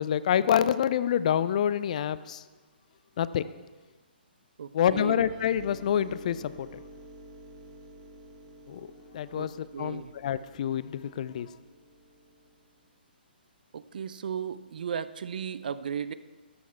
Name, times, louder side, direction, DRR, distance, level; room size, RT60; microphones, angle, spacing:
voice 1, 0.0-2.4 3.2-3.5 4.7-6.8 8.7-8.9 9.1-11.5, left 9 dB, 45° left, 16 dB, 0.4 m, -27 dB
voice 2, 4.6-5.2 9.3-10.1 13.7-16.1, right 7 dB, 55° right, 15 dB, 0.5 m, -35 dB
sound 1, 5.2-12.8, right 1 dB, 35° right, 1.5 m, -51 dB
13.5 x 9.2 x 4.5 m, 1.3 s
figure-of-eight pair, 130°, 6 cm